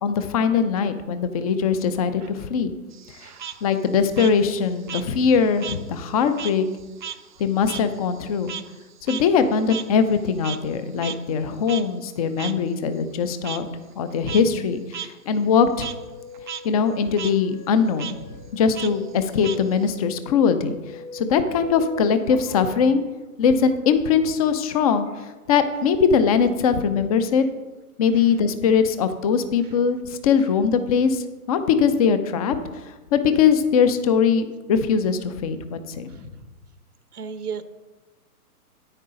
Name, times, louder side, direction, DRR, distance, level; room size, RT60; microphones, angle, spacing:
voice 1, 0.0-2.7 3.6-6.7 7.4-8.5 9.1-13.7 14.0-15.9 16.6-20.7 21.1-23.0 23.4-25.2 25.5-27.5 28.0-32.6 33.1-36.1, left 6 dB, 25° left, 11 dB, 0.6 m, -21 dB
Frog, 2.9-5.8 6.1-10.8 11.0-11.1 11.7-11.8 12.4-12.5 13.4-13.6 14.1-14.4 14.9-15.1 15.4-15.9 16.3-16.6 16.9-17.3 18.0-18.1 18.7-20.0, right 9 dB, 35° right, 0.4 m, -35 dB
voice 2, 3.2-3.6 28.1-28.3 36.1-36.2 37.1-37.6, right 6 dB, 80° right, 11 dB, 0.9 m, -35 dB
sound 1, 15.8-23.0, left 2 dB, 65° left, 0.9 m, -42 dB
9.9 x 9.2 x 3.8 m, 1.2 s
figure-of-eight pair, 125°, 45 cm